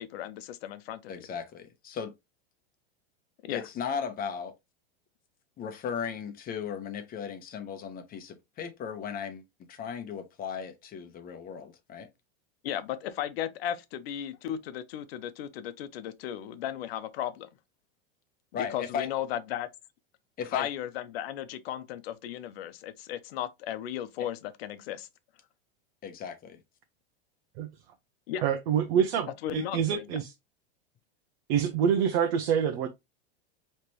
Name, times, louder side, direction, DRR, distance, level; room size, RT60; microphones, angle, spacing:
voice 1, 0.0-1.1 3.4-3.6 12.6-17.5 18.6-19.7 20.5-25.1 28.3-28.4 29.4-30.1, left 11 dB, 70° left, 0.8 m, -35 dB
voice 2, 1.1-2.1 3.5-4.5 5.6-9.4 9.7-12.1 18.5-19.1 20.4-20.7 26.0-26.6, left 7 dB, 30° left, 1.0 m, -36 dB
voice 3, 28.4-30.3 31.5-32.9, right 8 dB, 65° right, 0.8 m, -26 dB
5.0 x 3.3 x 2.9 m
supercardioid pair, 135°, 31 cm